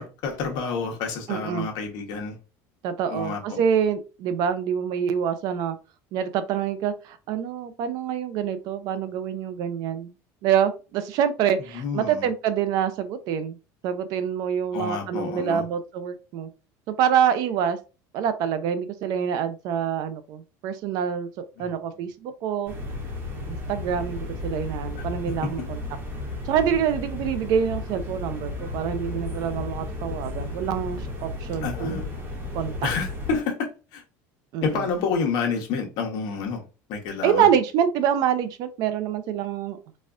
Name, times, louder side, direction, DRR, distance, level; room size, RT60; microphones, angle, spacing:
voice 1, 0.0-2.4 3.1-3.6 11.7-12.3 14.7-15.6 21.6-21.7 25.0-25.1 31.6-32.1 32.8-34.0 34.6-36.6 36.9-37.5, left 5 dB, 60° left, 1.0 m, -29 dB
voice 2, 1.3-1.7 2.8-5.8 6.1-10.1 10.4-13.6 13.8-16.5 16.9-17.8 18.1-22.7 23.5-25.8 26.5-32.1 32.5-32.7 34.5-34.8 37.2-39.8, right 8 dB, 60° right, 0.5 m, -26 dB
sound 1, 22.7-33.4, left 2 dB, 30° right, 1.1 m, -33 dB
4.1 x 2.3 x 2.4 m
cardioid pair, 150°, 8 cm